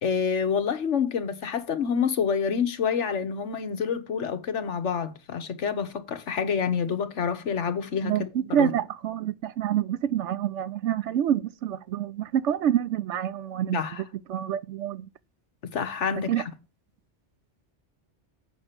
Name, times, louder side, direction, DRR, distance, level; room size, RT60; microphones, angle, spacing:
voice 1, 0.0-8.7 13.7-14.0 15.6-16.4, left 6 dB, 85° left, 1.4 m, -28 dB
voice 2, 8.0-15.1 16.3-16.4, right 10 dB, 80° right, 0.9 m, -27 dB
7.8 x 5.8 x 6.6 m
omnidirectional pair, 1.2 m